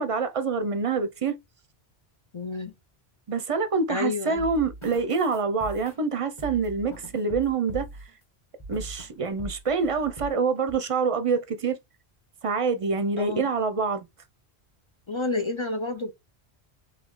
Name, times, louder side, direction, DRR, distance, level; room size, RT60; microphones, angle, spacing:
voice 1, 0.0-1.4 3.3-7.9 8.7-11.8 12.4-14.1, right 4 dB, 40° right, 0.5 m, -26 dB
voice 2, 2.3-2.7 3.9-4.5 13.2-13.4 15.1-16.1, left 3 dB, 50° left, 0.3 m, -29 dB
sound 1, 4.4-8.1 8.6-9.1 9.4-10.3 10.7-10.8, right 2 dB, 25° left, 1.3 m, -41 dB
4.1 x 2.9 x 3.7 m
omnidirectional pair, 1.1 m